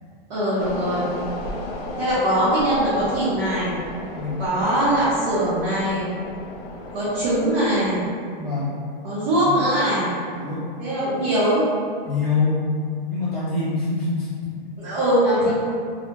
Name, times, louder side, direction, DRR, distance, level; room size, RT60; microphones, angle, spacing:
voice 1, 0.3-1.1 2.0-3.7 4.4-6.1 6.9-8.0 9.0-10.1 10.8-11.6 14.8-15.5, right 1 dB, 45° right, -12 dB, 0.7 m, -21 dB
sound 1, 0.6-8.1, left 2 dB, 80° left, 0.5 m, -35 dB
voice 2, 8.4-8.7 9.4-9.5 10.3-10.6 12.0-12.7 13.1-14.3 15.4-15.5, left 3 dB, 5° left, -15 dB, 0.6 m, -25 dB
2.2 x 2.0 x 2.8 m, 2.3 s
hypercardioid pair, 165°, 29 cm